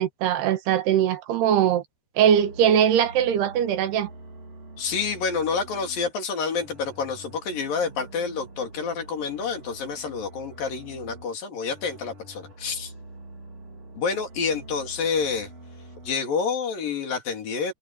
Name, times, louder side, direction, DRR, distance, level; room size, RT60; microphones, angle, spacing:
voice 1, 0.0-1.8 2.2-4.1, right 9 dB, 80° right, 3.4 m, -21 dB
sound 1, 2.3-6.2 6.5-11.3 11.6-16.2, right 1 dB, 40° right, 5.1 m, -45 dB
voice 2, 4.8-12.9 14.0-15.5 16.0-17.7, left 5 dB, 60° left, 4.8 m, -28 dB
omnidirectional pair, 4.6 m